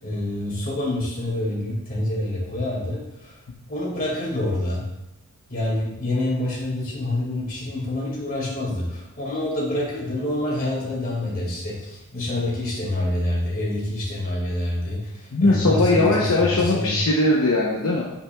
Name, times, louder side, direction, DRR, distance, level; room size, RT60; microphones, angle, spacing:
voice 1, 0.0-3.4 3.7-4.8 5.5-17.0, left 1 dB, 40° left, -4 dB, 2.3 m, -27 dB
voice 2, 15.3-18.0, left 2 dB, 65° left, -3 dB, 0.9 m, -20 dB
8.1 x 6.0 x 2.4 m, 0.89 s
head